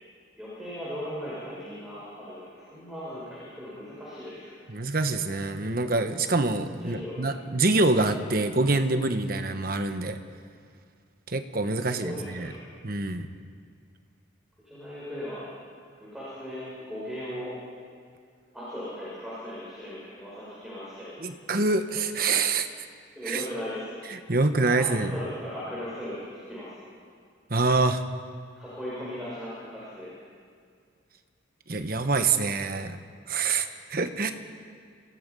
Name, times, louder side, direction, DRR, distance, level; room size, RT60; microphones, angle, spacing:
voice 1, 0.4-4.5 6.8-7.2 11.9-12.6 14.6-15.5 16.0-17.5 18.5-21.2 23.1-24.0 24.4-26.7 28.6-30.1, equal, ahead, -10 dB, 6.6 m, -38 dB
voice 2, 4.7-10.2 11.3-12.5 12.8-13.3 21.2-22.7 23.3-23.4 24.3-25.1 27.5-28.0 31.7-33.0 33.3-34.3, right 3 dB, 45° right, 8 dB, 1.2 m, -25 dB
27.5 x 17.5 x 5.5 m, 2.1 s
head